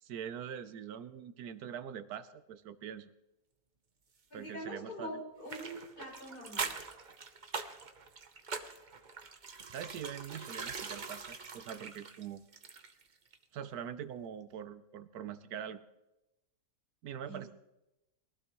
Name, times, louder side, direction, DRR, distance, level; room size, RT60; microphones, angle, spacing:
voice 1, 0.0-3.1 4.3-5.2 9.6-12.4 13.5-15.8 17.0-17.5, right 8 dB, 80° right, 12 dB, 1.3 m, -43 dB
voice 2, 4.3-6.7 17.3-17.5, right 1 dB, 90° left, -4 dB, 6.3 m, -44 dB
sound 1, 5.5-13.1 13.3-13.4, right 5 dB, 40° right, 0.8 m, -43 dB
22.0 x 15.5 x 3.1 m, 0.94 s
omnidirectional pair, 1.6 m